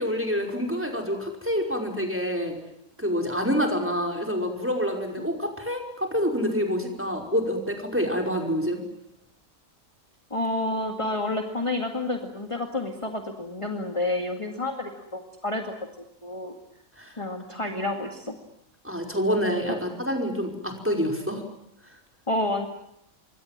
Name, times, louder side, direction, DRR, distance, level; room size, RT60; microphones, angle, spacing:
voice 1, 0.0-2.6 3.0-8.8 17.0-17.2 17.7-17.8 18.8-21.4, equal, 10° right, 3 dB, 5.3 m, -27 dB
voice 2, 10.3-15.7 16.2-16.5 17.2-18.3 19.7-19.9 22.3-22.7, left 2 dB, 25° left, 4 dB, 2.2 m, -29 dB
27.0 x 23.5 x 7.5 m, 0.78 s
omnidirectional pair, 1.4 m